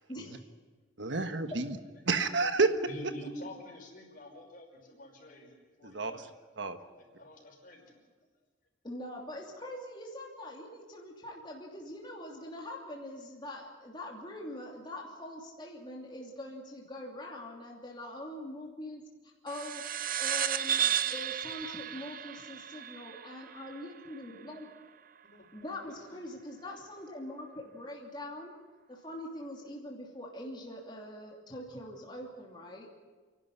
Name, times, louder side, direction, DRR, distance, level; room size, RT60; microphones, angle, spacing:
voice 1, 0.1-0.4 8.8-19.0 19.4-19.8 20.2-24.7 25.5-28.5 28.9-32.9, left 1 dB, 25° left, -2 dB, 2.9 m, -43 dB
voice 2, 1.0-1.8 2.1-2.7 5.8-6.2 6.6-6.8, right 3 dB, 65° right, 9 dB, 1.4 m, -29 dB
voice 3, 2.8-5.5 5.8-6.3 6.9-7.9 25.3-25.5 25.8-26.2, left 1 dB, 45° left, 1 dB, 5.6 m, -47 dB
sound 1, 19.5-24.4, right 9 dB, 45° right, 0.6 m, -33 dB
29.5 x 12.0 x 9.9 m, 1.4 s
head